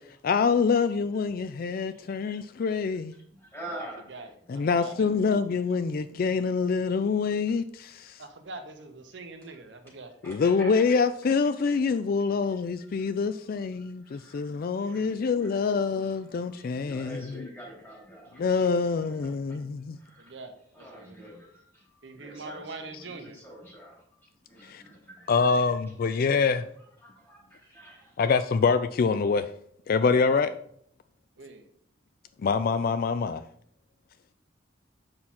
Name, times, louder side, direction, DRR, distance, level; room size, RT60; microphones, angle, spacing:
voice 1, 0.2-3.1 4.5-8.2 10.2-17.5 18.4-20.0 24.6-24.8 25.3-26.6 28.2-29.5 29.9-30.5 32.4-33.4, left 5 dB, 50° left, 12 dB, 0.4 m, -25 dB
voice 2, 1.8-2.7 3.3-4.6 6.2-6.3 9.4-9.5 10.2-10.9 12.8-13.3 13.7-18.9 19.2-19.6 19.9-20.4 20.7-25.6 26.0-28.3, right 1 dB, 15° left, -4 dB, 3.7 m, -48 dB
voice 3, 3.7-5.1 8.2-10.1 20.2-21.3 22.0-23.4 31.4-31.6, right 3 dB, 70° right, 6 dB, 0.9 m, -43 dB
7.6 x 6.0 x 4.2 m, 0.67 s
head